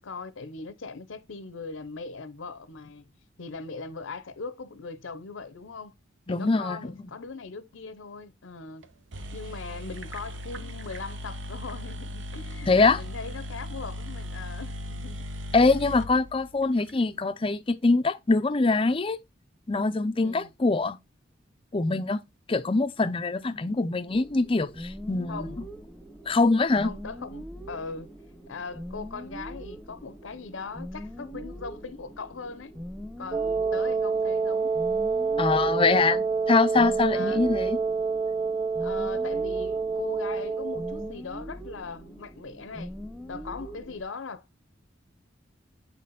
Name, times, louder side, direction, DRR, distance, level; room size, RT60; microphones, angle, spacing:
voice 1, 0.0-3.1 3.4-5.9 6.3-8.9 9.3-15.3 20.1-20.5 25.3-25.7 26.8-28.1 28.5-32.7 33.2-34.7 37.1-37.4 38.8-42.9 43.3-44.4, left 4 dB, 80° left, 0.7 m, -40 dB
voice 2, 6.3-7.1 12.7-13.0 15.5-19.2 19.7-21.0 21.7-22.2 22.5-25.5 26.3-26.9 35.4-37.8, left 3 dB, 30° left, 0.5 m, -24 dB
sound 1, 8.8-8.9 9.1-16.9, equal, 65° right, 0.8 m, -38 dB
sound 2, 24.1-44.0, equal, 5° right, 0.9 m, -42 dB
Wind instrument woodwind instrument, 33.3-41.2, right 5 dB, 25° right, 0.3 m, -27 dB
8.2 x 4.2 x 3.9 m
head